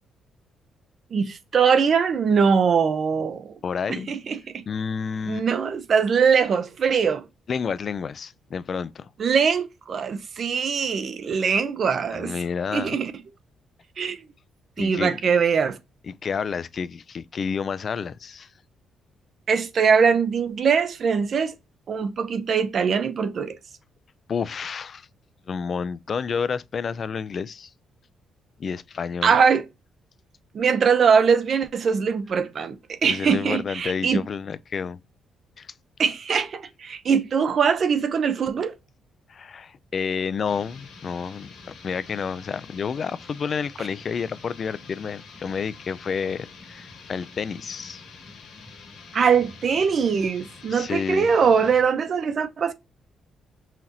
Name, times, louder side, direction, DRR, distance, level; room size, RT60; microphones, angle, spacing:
voice 1, 1.1-3.5 3.9-4.6 5.3-7.3 9.2-12.3 12.7-13.1 14.0-14.2 14.8-15.8 19.5-21.5 21.9-23.6 29.2-29.7 30.5-34.2 36.0-38.8 49.1-52.7, right 6 dB, 50° right, 0.5 m, -22 dB
voice 2, 3.6-4.1 4.7-5.5 7.5-9.1 12.1-13.0 14.8-15.2 16.0-18.5 24.3-25.1 25.5-27.7 28.6-29.4 33.0-35.0 35.6-35.7 39.3-48.0 50.7-51.3, left 6 dB, 45° left, 0.3 m, -30 dB
sound 1, 40.4-51.9, left 4 dB, 85° left, 1.6 m, -46 dB
5.7 x 2.5 x 2.9 m
cardioid pair, 90°, 0 cm